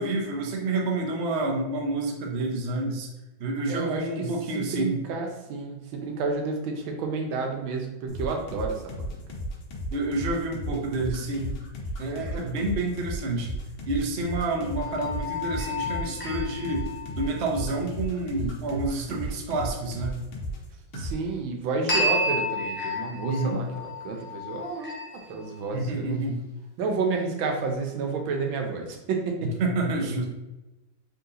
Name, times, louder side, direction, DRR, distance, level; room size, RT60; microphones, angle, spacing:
voice 1, 0.0-3.1 3.4-5.0 9.9-11.6 12.0-13.5 13.9-20.2 23.2-23.6 25.7-26.4 29.6-30.2, right 2 dB, 60° right, 0 dB, 0.6 m, -29 dB
voice 2, 3.7-4.3 4.5-9.2 19.1-19.2 20.9-26.2 26.8-29.5, right 4 dB, 80° right, 2 dB, 1.5 m, -30 dB
sound 1, 8.1-20.7 20.9-21.1, equal, 90° left, 1.8 m, -34 dB
sound 2, 14.8-17.6 21.9-25.4, left 1 dB, 10° left, 0.8 m, -31 dB
4.2 x 2.8 x 3.8 m, 1.0 s
omnidirectional pair, 2.2 m